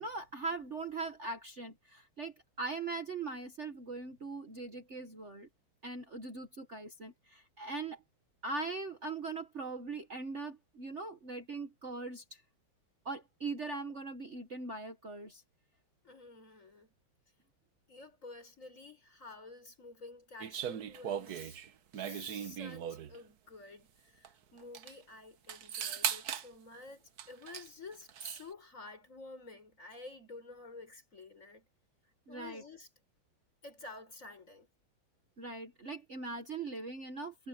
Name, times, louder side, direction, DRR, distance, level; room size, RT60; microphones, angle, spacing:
voice 1, 0.0-5.5 5.8-8.0 8.4-12.4 13.0-15.4 32.3-32.6 35.4-37.5, right 3 dB, 40° right, 1.5 m, -41 dB
voice 2, 16.0-16.9 17.9-21.6 21.9-31.7 32.3-32.9 33.6-34.7, left 3 dB, 40° left, 5.4 m, -51 dB
sound 1, 20.4-23.2 24.2-24.3 24.6-24.9 25.5-26.5 27.2-27.7 27.9-28.4, right 9 dB, 55° right, 1.4 m, -38 dB
omnidirectional pair, 2.2 m